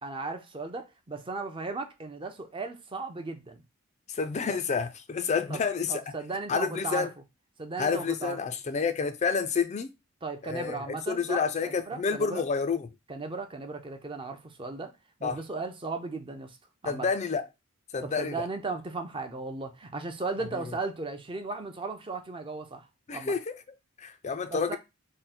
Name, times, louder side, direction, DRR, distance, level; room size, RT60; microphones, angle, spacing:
voice 1, 0.0-3.6 4.4-4.6 5.5-5.6 5.9-7.1 7.6-8.4 10.2-12.4 13.1-14.9 15.2-16.6 16.8-17.1 18.0-22.9 23.1-23.3 24.5-24.8, right 3 dB, 25° right, 0.5 m, -36 dB
voice 2, 4.1-6.1 6.5-7.1 7.8-9.9 10.4-12.9 15.2-15.4 16.8-17.5 17.9-18.5 23.1-23.6 24.0-24.8, left 5 dB, 35° left, 0.4 m, -29 dB
3.6 x 2.1 x 4.1 m
head